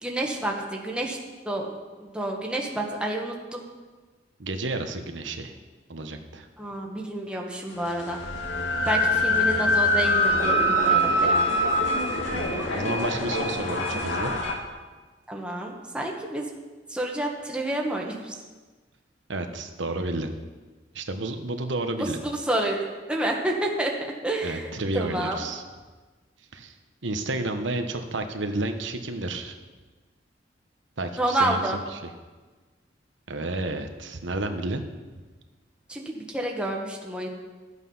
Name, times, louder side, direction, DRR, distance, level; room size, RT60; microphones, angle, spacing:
voice 1, 0.0-1.2 1.4-1.7 2.0-3.6 6.6-8.2 8.8-11.4 15.3-16.5 16.9-18.4 22.0-22.8 23.1-23.9 24.2-25.4 31.2-31.8 35.9-37.3, right 1 dB, 5° right, -1 dB, 1.3 m, -29 dB
voice 2, 4.4-5.5 5.9-6.5 12.3-14.3 19.3-20.3 20.9-22.2 24.4-25.6 26.5-26.7 27.0-29.6 31.0-31.6 31.9-32.1 33.3-34.8, right 2 dB, 80° right, 6 dB, 1.2 m, -31 dB
sound 1, 7.9-14.5, equal, 90° left, 2.1 m, -24 dB
13.5 x 8.2 x 5.5 m, 1.3 s
head